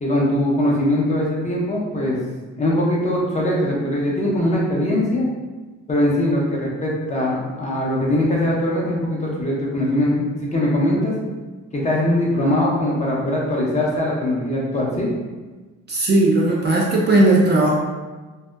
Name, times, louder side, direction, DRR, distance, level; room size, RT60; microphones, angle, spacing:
voice 1, 0.0-2.2 2.6-5.3 5.9-11.1 11.7-15.1, left 1 dB, 25° left, -4 dB, 0.6 m, -21 dB
voice 2, 15.9-17.7, right 2 dB, 35° right, -2 dB, 0.4 m, -16 dB
2.7 x 2.0 x 2.2 m, 1.3 s
cardioid pair, 90°, 30 cm